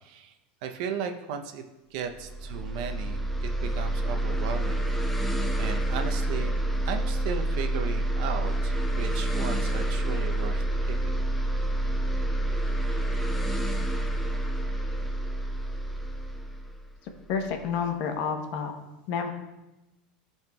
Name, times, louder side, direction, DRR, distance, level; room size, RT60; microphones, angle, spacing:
voice 1, 0.0-0.3 0.6-1.6 1.9-4.7 5.2-5.3 5.6-6.5 6.8-11.2, right 7 dB, 70° right, 6 dB, 0.7 m, -36 dB
sound 1, 2.1-17.6, right 1 dB, 5° left, 0.5 m, -28 dB
voice 2, 17.3-18.8 19.1-19.3, left 6 dB, 60° left, 5 dB, 0.9 m, -29 dB
13.0 x 4.4 x 2.3 m, 0.99 s
supercardioid pair, 135°, 4 cm